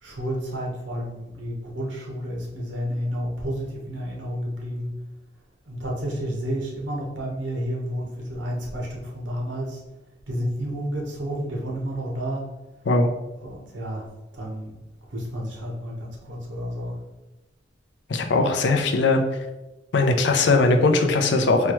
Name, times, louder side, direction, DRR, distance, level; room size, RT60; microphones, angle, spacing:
voice 1, 0.0-4.9 5.6-9.8 10.3-12.5 13.4-14.1 14.3-14.8 15.1-17.0, equal, 75° right, -1 dB, 1.0 m, -31 dB
voice 2, 18.1-19.2 19.9-21.7, left 3 dB, 65° left, 4 dB, 0.5 m, -19 dB
4.3 x 2.3 x 3.0 m, 1.0 s
head